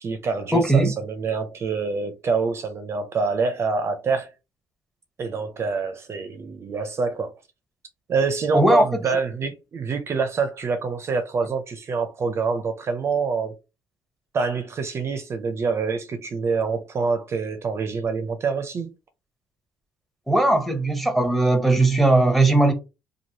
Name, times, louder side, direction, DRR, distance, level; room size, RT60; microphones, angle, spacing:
voice 1, 0.0-4.3 5.2-7.3 8.1-13.5 14.3-18.9, right 4 dB, 40° right, 0.4 m, -26 dB
voice 2, 0.5-0.9 8.5-8.8 20.3-22.7, right 2 dB, ahead, 0.8 m, -18 dB
3.0 x 2.5 x 2.7 m
cardioid pair, 105°, 7 cm